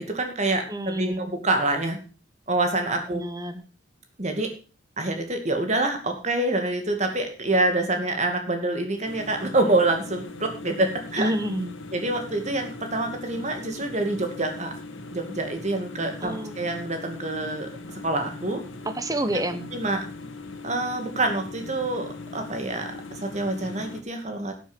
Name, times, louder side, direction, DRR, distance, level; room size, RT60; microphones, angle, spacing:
voice 1, 0.0-2.0 2.5-3.2 4.2-4.5 5.0-11.3 11.9-14.7 15.1-17.7 18.0-18.6 19.7-20.0 20.6-24.5, right 2 dB, 35° right, 5 dB, 2.4 m, -26 dB
voice 2, 0.7-1.3 3.1-3.6 11.2-11.7 16.2-16.6 18.8-19.7, right 1 dB, 20° right, 9 dB, 1.1 m, -28 dB
sound 1, 9.0-24.0, left 3 dB, 75° left, 1.9 m, -40 dB
12.5 x 7.4 x 6.1 m, 0.35 s
head